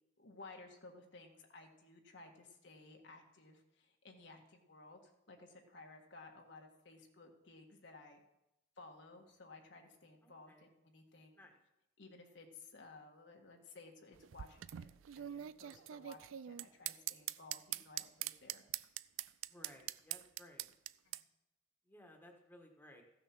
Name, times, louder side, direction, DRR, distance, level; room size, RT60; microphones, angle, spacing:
voice 1, 0.2-8.2 8.8-11.4 12.0-18.6 21.0-21.2, left 3 dB, 60° left, 2 dB, 1.5 m, -57 dB
voice 2, 10.2-10.7 11.3-11.6 19.5-20.7 21.8-23.0, left 1 dB, 10° left, 1 dB, 1.5 m, -59 dB
sound 1, 14.1-21.2, right 13 dB, 85° right, 0.4 m, -43 dB
15.0 x 6.7 x 6.0 m, 0.89 s
head